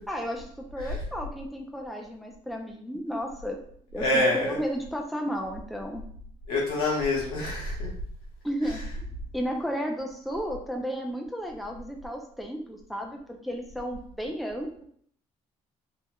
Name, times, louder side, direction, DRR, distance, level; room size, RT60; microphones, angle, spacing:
voice 1, 0.1-3.6 3.9-6.0 8.4-9.1 9.3-14.8, equal, ahead, 1 dB, 0.5 m, -33 dB
voice 2, 4.0-4.6 6.5-7.9, left 2 dB, 85° left, -4 dB, 1.2 m, -26 dB
3.5 x 2.8 x 2.2 m, 0.62 s
supercardioid pair, 70°, 14 cm